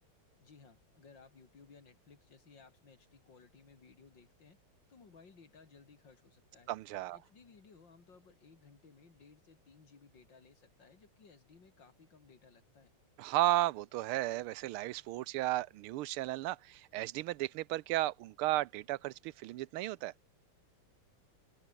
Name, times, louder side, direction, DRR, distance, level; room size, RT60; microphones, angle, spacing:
voice 1, 0.4-4.6 4.9-6.7 7.1-12.9, left 5 dB, 55° left, 3.5 m, -60 dB
voice 2, 6.7-7.2 13.2-20.1, right 17 dB, 85° right, 1.5 m, -34 dB
open air
omnidirectional pair, 2.4 m